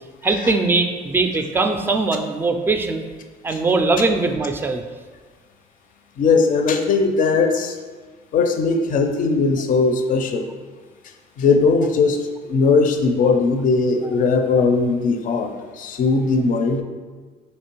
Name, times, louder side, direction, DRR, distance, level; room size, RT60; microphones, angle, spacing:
voice 1, 0.2-3.0 3.4-4.8, right 3 dB, 15° right, 6 dB, 0.3 m, -20 dB
voice 2, 6.2-7.8 8.3-10.5 11.4-12.2 12.5-16.8, left 4 dB, 50° left, 5 dB, 0.5 m, -19 dB
3.2 x 2.9 x 4.4 m, 1.4 s
cardioid pair, 110°, 17 cm